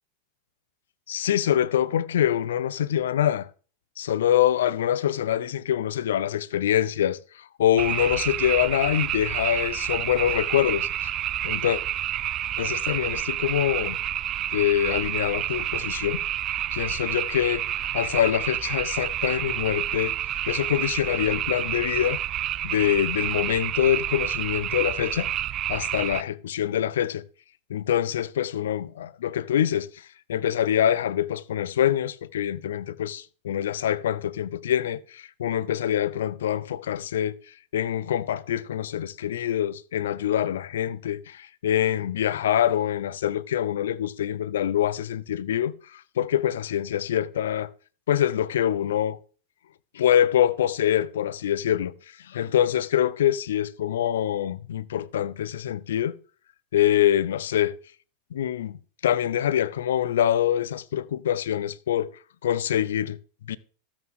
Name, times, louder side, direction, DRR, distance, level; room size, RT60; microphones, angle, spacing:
voice 1, 1.1-3.5 4.0-11.2 11.4-11.8 12.6-14.0 14.5-16.2 16.7-22.2 22.6-25.3 25.7-27.2 27.7-29.9 30.3-37.3 37.7-47.7 48.1-49.2 49.9-51.9 52.2-56.2 56.7-57.7 58.3-62.1 62.4-63.2 63.5-63.6, left 10 dB, 80° left, 0.7 m, -25 dB
sound 1, 7.8-26.2, right 12 dB, 40° right, 0.4 m, -29 dB
13.0 x 8.9 x 3.7 m
hypercardioid pair, 110°, 0 cm